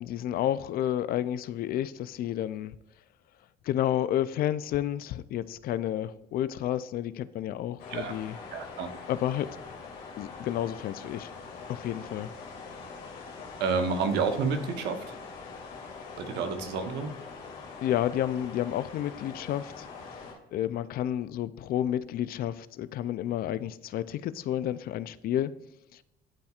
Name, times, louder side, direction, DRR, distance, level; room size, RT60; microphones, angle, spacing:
voice 1, 0.0-2.7 3.6-8.4 9.1-9.5 10.2-11.3 11.7-12.3 17.8-19.9 20.5-25.5 25.9-26.0, left 11 dB, 60° left, 0.4 m, -30 dB
sound 1, 7.8-20.3, left 4 dB, 80° left, 2.6 m, -43 dB
voice 2, 8.5-8.9 13.6-15.0 16.2-17.1, right 5 dB, 85° right, 1.0 m, -29 dB
12.0 x 4.3 x 2.4 m
cardioid pair, 110°, 17 cm